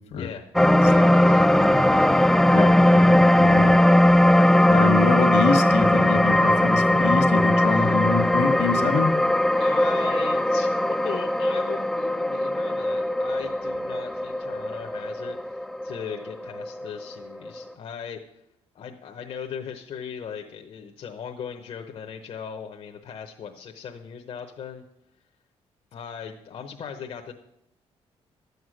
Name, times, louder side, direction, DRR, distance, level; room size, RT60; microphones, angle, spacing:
voice 1, 0.1-0.5 0.8-2.3 7.7-8.0 9.5-18.4 18.7-24.8 25.9-27.3, left 7 dB, 60° left, 3 dB, 0.9 m, -38 dB
sound 1, 0.5-17.0 17.5-17.6, left 1 dB, 5° left, 0.4 m, -19 dB
voice 2, 2.5-3.7 4.7-9.1, left 5 dB, 75° left, 6 dB, 1.5 m, -26 dB
12.0 x 8.1 x 6.2 m, 0.82 s
cardioid pair, 115°, 11 cm